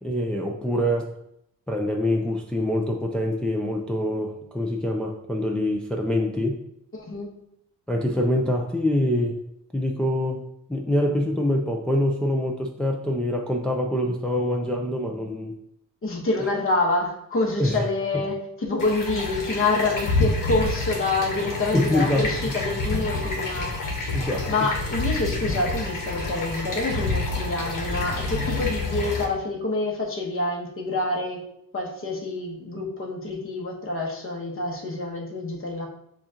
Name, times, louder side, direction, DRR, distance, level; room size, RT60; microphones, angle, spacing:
voice 1, 0.0-1.1 1.7-6.6 7.9-9.4 9.7-10.4 10.7-15.5 16.4-16.5 17.6-17.8 21.7-22.3 24.1-24.7, left 1 dB, 5° left, 0 dB, 0.4 m, -25 dB
voice 2, 16.0-23.7 24.5-31.4 31.7-35.9, left 2 dB, 35° left, -1 dB, 1.2 m, -27 dB
sound 1, 18.8-29.2, left 2 dB, 65° left, 1.3 m, -28 dB
7.1 x 2.5 x 2.9 m, 0.75 s
cardioid pair, 90°, 35 cm